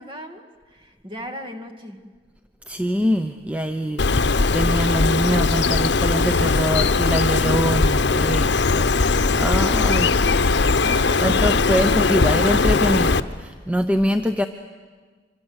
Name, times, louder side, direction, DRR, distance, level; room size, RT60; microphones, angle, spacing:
voice 1, 0.0-2.0, equal, 30° right, 5 dB, 2.3 m, -38 dB
voice 2, 2.7-10.3 10.9-14.5, equal, 10° right, 7 dB, 0.7 m, -24 dB
Bird, 4.0-13.2, left 4 dB, 70° left, 0.8 m, -19 dB
25.5 x 25.0 x 8.1 m, 1.5 s
head